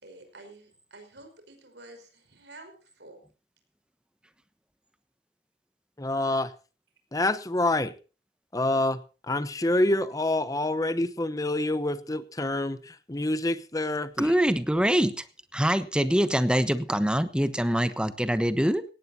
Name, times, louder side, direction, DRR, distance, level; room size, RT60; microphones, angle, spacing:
voice 1, 0.0-3.3 9.5-9.7, right 2 dB, 75° right, 6 dB, 5.1 m, -50 dB
voice 2, 6.0-6.5 7.1-7.9 8.5-9.0 9.3-14.3, left 2 dB, 20° left, 12 dB, 1.0 m, -27 dB
voice 3, 14.2-15.1 15.5-18.8, equal, 5° right, 12 dB, 1.1 m, -24 dB
18.0 x 17.0 x 2.8 m, 0.34 s
head